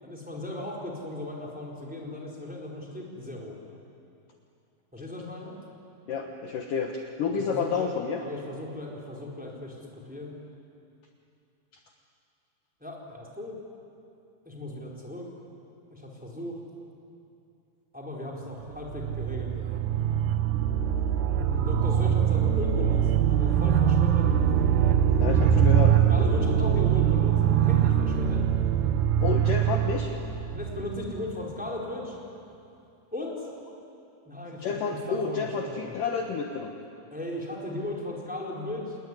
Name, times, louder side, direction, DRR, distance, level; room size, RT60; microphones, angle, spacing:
voice 1, 0.0-3.6 4.9-5.6 7.3-7.9 8.2-10.3 12.8-13.6 14.4-15.3 15.9-16.6 17.9-19.8 21.5-24.3 26.1-28.5 30.5-32.2 33.1-33.5 34.2-34.6 35.1-36.0 37.1-39.0, left 1 dB, ahead, -2 dB, 3.7 m, -37 dB
voice 2, 6.1-8.2 25.2-25.9 29.2-30.1 34.6-36.7, left 5 dB, 65° left, 3 dB, 2.4 m, -30 dB
sound 1, 18.6-31.4, right 9 dB, 75° right, 1.9 m, -23 dB
28.5 x 19.5 x 9.8 m, 2.6 s
omnidirectional pair, 4.9 m